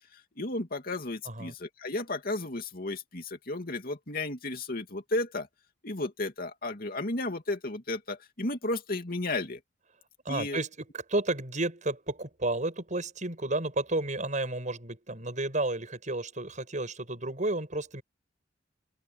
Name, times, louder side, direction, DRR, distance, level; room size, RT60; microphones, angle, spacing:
voice 1, 0.1-5.5 5.8-9.6 10.3-10.6, left 2 dB, 55° left, 2.8 m, -33 dB
voice 2, 10.2-18.0, right 2 dB, 45° right, 7.4 m, -32 dB
open air
head